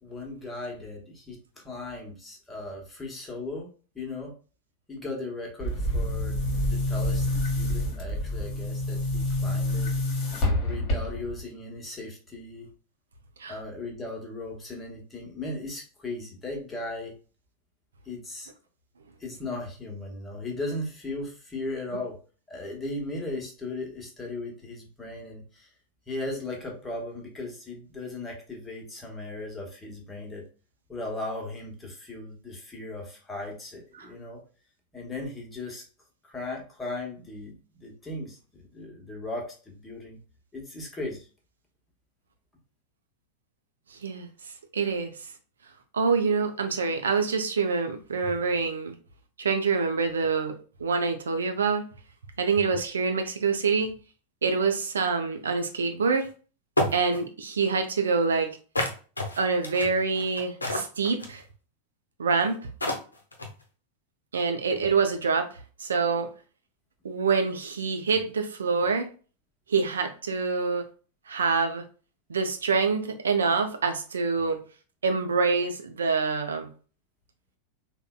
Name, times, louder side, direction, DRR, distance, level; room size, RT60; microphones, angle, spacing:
voice 1, 0.0-3.7 3.9-4.3 4.9-9.9 10.6-12.7 13.5-17.2 18.0-18.5 19.2-22.2 22.5-25.7 26.1-30.4 30.9-34.4 34.9-35.8 36.3-40.2 40.5-41.3, left 2 dB, 15° left, 1.0 m, -37 dB
Boom, 5.6-11.4, left 1 dB, 35° left, 1.1 m, -27 dB
voice 2, 44.7-45.1 45.9-48.9 49.4-51.8 52.4-53.9 54.4-56.3 56.9-58.5 59.4-61.4 62.2-62.6 64.3-65.5 65.8-66.3 67.0-69.1 69.7-70.8 71.3-71.8 72.3-74.6 75.0-76.7, right 4 dB, 70° right, 0.4 m, -26 dB
sound 1, 56.2-56.3 56.8-57.2 58.8-61.4 62.4-62.5 62.8-63.6, left 1 dB, 80° left, 0.6 m, -29 dB
3.7 x 2.1 x 2.2 m
figure-of-eight pair, 90°, 0 cm